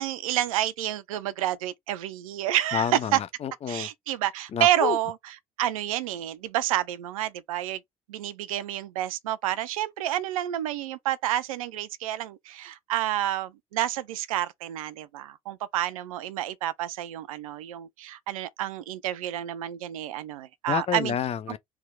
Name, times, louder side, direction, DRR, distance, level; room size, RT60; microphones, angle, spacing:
voice 1, 0.0-3.2 3.7-5.1 5.6-7.8 8.1-21.2 21.5-21.6, right 13 dB, 70° right, 0.7 m, -29 dB
voice 2, 2.7-3.9 4.5-5.0 20.7-21.6, left 8 dB, 35° left, 0.7 m, -29 dB
3.6 x 2.9 x 4.8 m
figure-of-eight pair, 60°, 18 cm